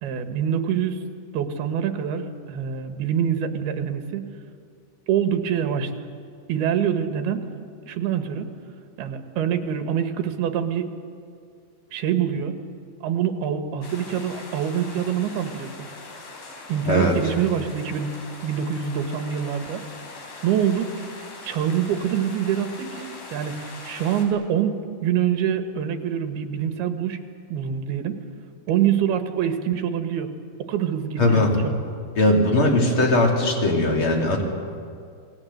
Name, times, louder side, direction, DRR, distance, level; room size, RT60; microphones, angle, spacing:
voice 1, 0.0-1.0 1.3-4.4 5.1-5.9 6.5-7.5 7.9-8.5 9.0-10.9 11.9-12.6 13.0-15.7 16.7-18.1 18.4-19.9 20.4-21.0 21.4-27.2 27.5-28.2 28.7-30.3 30.6-31.8, right 9 dB, 80° right, 6 dB, 3.4 m, -25 dB
sound 1, 13.8-24.3, left 3 dB, 65° left, 5.3 m, -41 dB
voice 2, 31.2-31.6 32.2-34.4, left 2 dB, 35° left, 0 dB, 3.5 m, -19 dB
29.0 x 19.5 x 7.9 m, 2.3 s
omnidirectional pair, 4.5 m